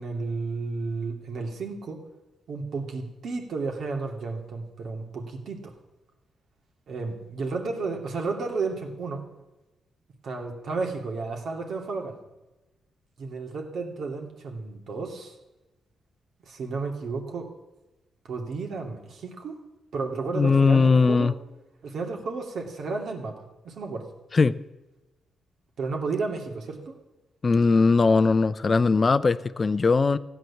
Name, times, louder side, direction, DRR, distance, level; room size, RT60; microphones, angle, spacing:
voice 1, 0.0-2.0 2.5-5.7 6.9-9.3 10.2-12.2 13.2-15.3 16.5-17.5 18.2-19.6 19.9-21.3 21.8-24.1 25.8-26.9, right 4 dB, 65° right, 2 dB, 2.5 m, -32 dB
voice 2, 20.3-21.3 24.3-24.6 27.4-30.2, left 4 dB, 30° left, 15 dB, 0.6 m, -20 dB
16.0 x 9.3 x 7.2 m, 1.1 s
cardioid pair, 120°, 0 cm